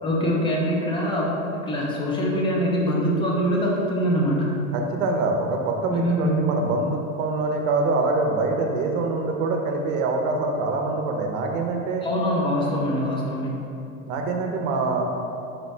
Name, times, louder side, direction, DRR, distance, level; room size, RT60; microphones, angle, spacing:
voice 1, 0.0-4.5 5.9-6.4 12.0-13.6, equal, 15° left, -3 dB, 0.3 m, -24 dB
voice 2, 4.7-12.1 14.0-15.0, right 3 dB, 70° right, 2 dB, 0.7 m, -25 dB
4.0 x 3.1 x 3.2 m, 2.7 s
supercardioid pair, 120°, 42 cm